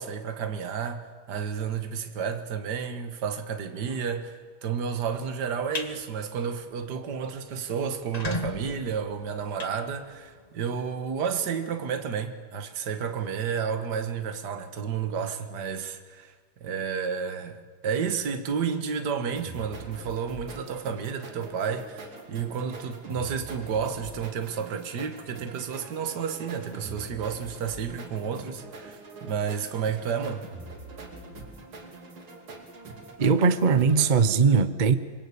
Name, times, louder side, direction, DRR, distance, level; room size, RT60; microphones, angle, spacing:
voice 1, 0.0-16.3 16.6-30.5, right 6 dB, 55° right, 2.1 m, -31 dB
sound 1, 5.5-5.9 6.4-6.6 7.0-7.1 7.3-7.4 7.9-10.5, left 2 dB, 25° left, 1.2 m, -36 dB
sound 2, 19.4-34.1, right 2 dB, 90° right, 3.8 m, -44 dB
voice 2, 33.2-34.9, right 5 dB, 35° right, 0.7 m, -20 dB
26.0 x 23.0 x 8.5 m
omnidirectional pair, 2.3 m